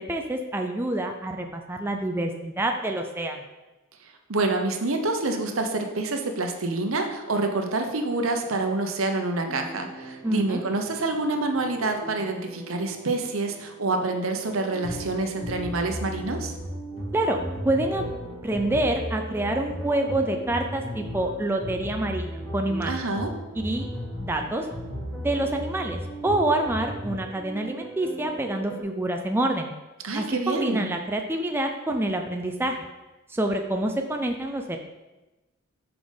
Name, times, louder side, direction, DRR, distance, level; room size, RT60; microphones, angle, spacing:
voice 1, 0.0-3.4 10.2-10.6 17.1-17.4 17.6-18.0 18.4-22.9 23.6-23.9 24.2-24.7 25.2-29.7 30.1-32.8 33.3-34.8, right 1 dB, 10° right, 3 dB, 0.4 m, -27 dB
voice 2, 4.0-16.5 22.9-23.3 30.0-30.9, right 2 dB, 70° right, 4 dB, 0.9 m, -27 dB
sound 1, 9.5-28.8, right 4 dB, 15° left, 2.5 m, -41 dB
sound 2, 14.8-27.3, left 1 dB, 70° left, 2.4 m, -36 dB
6.0 x 5.0 x 5.3 m, 1.1 s
head